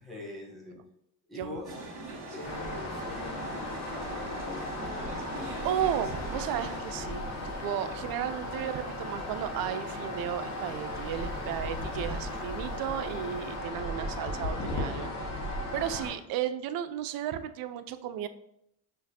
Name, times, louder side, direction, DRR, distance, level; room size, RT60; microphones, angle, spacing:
voice 1, 0.0-0.9 1.3-1.8 2.3-5.6, left 2 dB, ahead, -4 dB, 1.0 m, -44 dB
sound 1, 1.6-6.8, right 1 dB, 40° right, 1.6 m, -41 dB
sound 2, 2.4-16.1, left 1 dB, 40° left, 1.1 m, -36 dB
sound 3, 5.3-13.6, left 3 dB, 70° left, 0.9 m, -51 dB
voice 2, 5.6-15.3 15.7-18.3, right 10 dB, 55° right, 10 dB, 0.5 m, -34 dB
5.7 x 2.6 x 2.8 m, 0.76 s
supercardioid pair, 75°, 41 cm